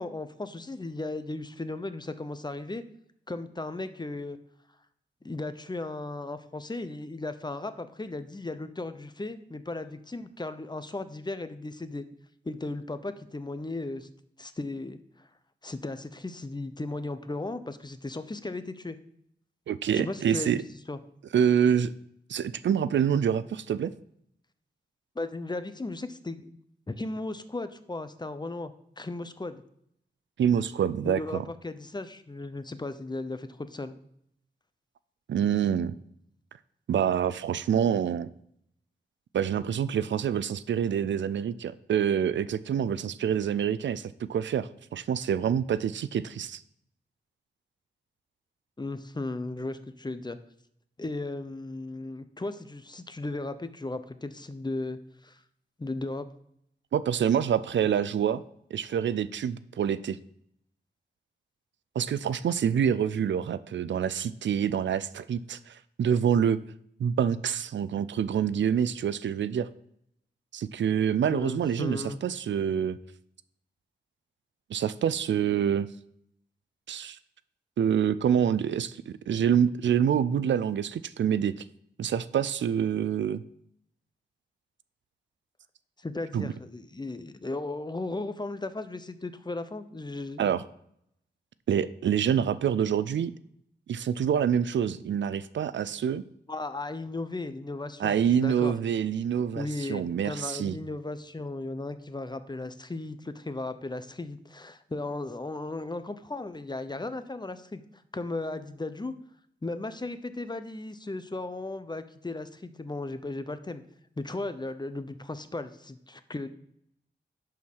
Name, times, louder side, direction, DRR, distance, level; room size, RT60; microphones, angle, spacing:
voice 1, 0.0-2.8 3.3-4.4 5.2-12.1 12.4-14.1 14.4-15.3 15.6-19.0 19.9-20.6 20.9-21.0 25.1-26.5 26.9-29.6 31.0-33.9 48.8-50.4 51.0-55.4 55.8-56.3 71.3-72.2 86.0-90.5 96.5-98.7 99.6-107.8 108.1-109.1 109.6-113.8 114.2-116.5, left 2 dB, 25° left, 11 dB, 0.8 m, -36 dB
voice 2, 19.7-20.6 21.3-21.9 22.3-23.9 30.4-31.4 35.3-35.9 36.9-38.3 39.3-46.6 56.9-58.4 58.7-60.2 62.0-66.6 67.0-69.7 70.5-73.0 74.7-75.9 76.9-77.2 77.8-81.6 82.0-83.4 86.3-86.5 90.4-90.6 91.7-93.3 93.9-96.2 98.0-100.8, right 8 dB, 90° right, 16 dB, 0.4 m, -26 dB
11.0 x 4.6 x 5.5 m, 0.72 s
cardioid pair, 60°, 19 cm